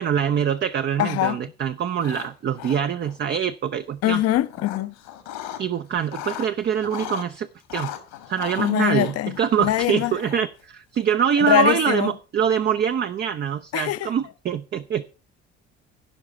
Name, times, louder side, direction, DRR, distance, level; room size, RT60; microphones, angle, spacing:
voice 1, 0.0-4.2 5.6-7.9 8.3-15.0, right 8 dB, 30° right, 0.5 m, -24 dB
voice 2, 1.0-1.4 4.0-4.9 8.6-10.2 11.4-12.1 13.7-14.1, left 13 dB, 45° left, 0.7 m, -23 dB
sound 1, 1.9-2.3 2.5-3.2 4.1-5.6 6.0-7.3 7.7-10.6, left 12 dB, 70° left, 1.6 m, -37 dB
15.0 x 5.6 x 4.9 m
figure-of-eight pair, 50°, 33 cm